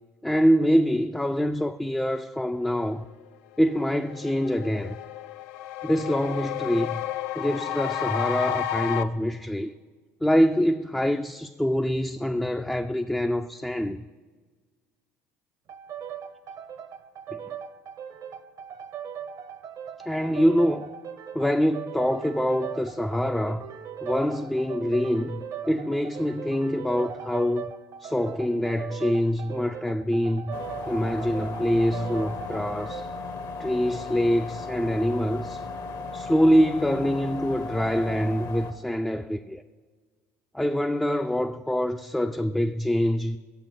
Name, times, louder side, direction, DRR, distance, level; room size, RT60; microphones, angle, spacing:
voice 1, 0.2-3.0 3.6-5.0 5.8-7.0 7.4-9.7 10.2-14.0 17.3-17.4 20.1-20.9 21.3-23.7 24.0-25.4 25.7-27.7 28.0-30.6 30.9-33.1 33.6-35.6 36.1-39.6 40.5-43.4, equal, 5° left, 0.3 m, -25 dB
sound 1, 3.3-3.4 3.7-9.0, left 11 dB, 75° left, 0.4 m, -32 dB
sound 2, 15.7-33.1, right 8 dB, 55° right, 0.7 m, -39 dB
sound 3, 30.5-38.7, left 3 dB, 55° left, 0.9 m, -36 dB
7.4 x 7.1 x 5.6 m
hypercardioid pair, 70°, 8 cm